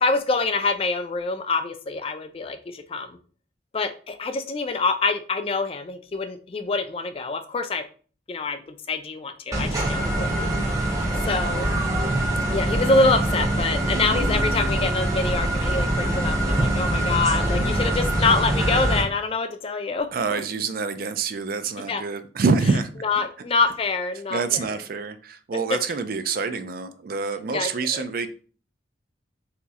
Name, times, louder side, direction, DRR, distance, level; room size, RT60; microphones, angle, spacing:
voice 1, 0.0-3.2 3.7-7.8 8.3-8.6 8.9-10.5 11.3-11.7 12.5-20.4 21.9-22.0 23.0-24.8 25.7-25.8 27.5-28.0, left 3 dB, 30° left, 8 dB, 0.3 m, -25 dB
sound 1, 9.5-19.0, right 1 dB, 15° right, 0.7 m, -24 dB
voice 2, 20.1-22.9 24.3-28.3, right 4 dB, 50° right, 10 dB, 0.4 m, -26 dB
3.0 x 2.9 x 3.5 m, 0.40 s
head